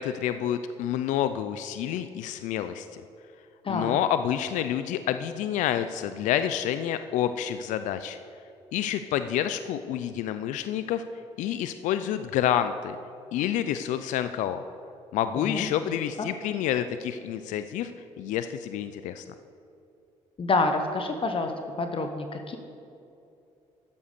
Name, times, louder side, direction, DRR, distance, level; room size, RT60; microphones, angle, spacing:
voice 1, 0.0-2.9 3.7-8.2 8.7-11.0 11.4-13.0 13.3-14.6 15.1-17.9 18.2-19.2, left 10 dB, 75° left, 10 dB, 0.4 m, -28 dB
voice 2, 3.6-4.0 15.3-15.7 16.2-16.3 20.4-21.5 21.8-22.6, left 3 dB, 45° left, 6 dB, 1.0 m, -27 dB
10.5 x 7.0 x 6.6 m, 2.7 s
supercardioid pair, 65°, 13 cm